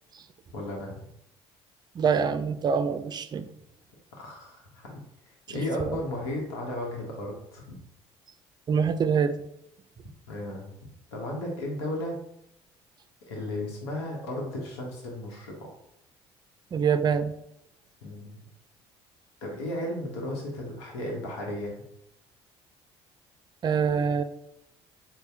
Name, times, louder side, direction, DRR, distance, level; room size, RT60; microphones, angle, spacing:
voice 1, 0.5-1.0 4.2-5.0 5.5-7.8 10.3-10.7 11.1-12.2 13.3-15.7 18.0-18.4 19.4-21.7, left 1 dB, 85° left, -2 dB, 0.8 m, -34 dB
voice 2, 2.0-3.5 5.5-6.0 8.7-9.3 16.7-17.3 23.6-24.2, right 6 dB, 30° right, 10 dB, 0.4 m, -25 dB
4.1 x 2.0 x 3.4 m, 0.77 s
hypercardioid pair, 65°, 13 cm